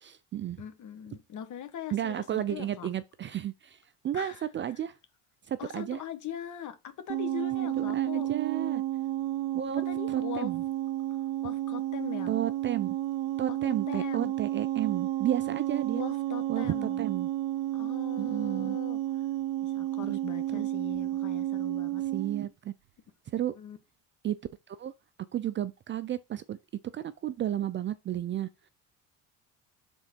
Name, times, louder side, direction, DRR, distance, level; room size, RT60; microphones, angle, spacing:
voice 1, 0.0-0.6 1.9-4.9 5.5-6.0 7.8-8.8 9.5-10.6 12.3-13.0 13.4-16.0 16.5-17.3 18.2-18.8 20.0-20.2 20.5-20.7 22.1-22.7 23.3-23.5 24.2-24.4 24.7-24.9 25.3-26.6 26.9-28.5, right 11 dB, 30° right, 0.4 m, -32 dB
voice 2, 0.6-2.9 4.1-4.4 5.6-8.3 9.9-10.5 11.4-12.4 13.5-14.3 15.9-17.0 17.7-19.0 19.6-22.1 23.6-23.8, left 9 dB, 50° left, 1.3 m, -41 dB
sound 1, 7.1-22.5, right 14 dB, 70° right, 0.8 m, -31 dB
6.2 x 3.8 x 4.4 m
supercardioid pair, 105°, 39 cm